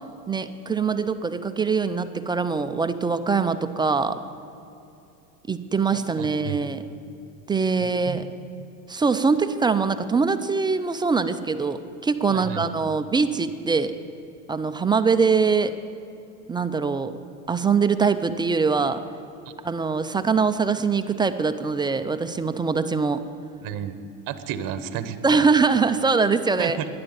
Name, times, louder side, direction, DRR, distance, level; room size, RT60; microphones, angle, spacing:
voice 1, 0.3-4.2 5.5-6.8 7.5-8.3 8.9-13.9 14.5-15.8 16.5-17.2 17.5-19.0 19.6-23.2 25.2-26.8, right 5 dB, 10° right, 10 dB, 0.3 m, -23 dB
voice 2, 5.9-6.6 7.8-8.2 12.3-12.6 23.6-24.0 24.3-25.4 26.6-26.9, right 10 dB, 55° right, 12 dB, 1.1 m, -32 dB
11.5 x 10.5 x 9.0 m, 2.8 s
supercardioid pair, 115°, 41 cm